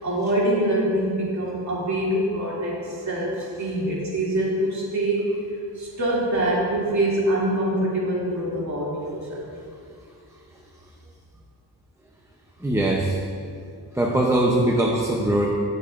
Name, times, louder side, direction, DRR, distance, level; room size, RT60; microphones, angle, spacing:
voice 1, 0.0-5.3 5.8-9.5, right 1 dB, 40° right, -6 dB, 2.6 m, -24 dB
voice 2, 12.6-13.2 13.9-15.5, right 1 dB, 5° right, -2 dB, 0.6 m, -21 dB
18.0 x 6.5 x 2.5 m, 2.3 s
wide cardioid pair, 150°, 42 cm